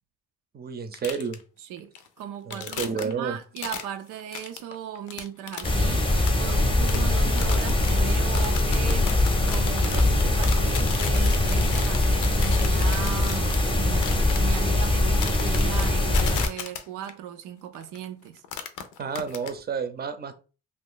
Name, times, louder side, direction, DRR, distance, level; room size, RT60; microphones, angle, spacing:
voice 1, 0.5-1.4 2.5-3.4 19.0-20.3, right 6 dB, 30° right, 0.6 m, -30 dB
sound 1, 0.9-1.4 1.8-2.2 2.5-3.1 3.6-3.9 4.1-5.7 6.1-8.0 8.3-14.5 15.2-17.1 17.7-18.0 18.4-19.5, left 8 dB, 85° left, 0.6 m, -36 dB
voice 2, 1.6-9.1 9.5-18.4, right 10 dB, 90° right, 0.5 m, -37 dB
sound 2, 5.6-16.5, left 2 dB, 15° left, 0.7 m, -22 dB
2.5 x 2.4 x 3.7 m
cardioid pair, 90°, 30 cm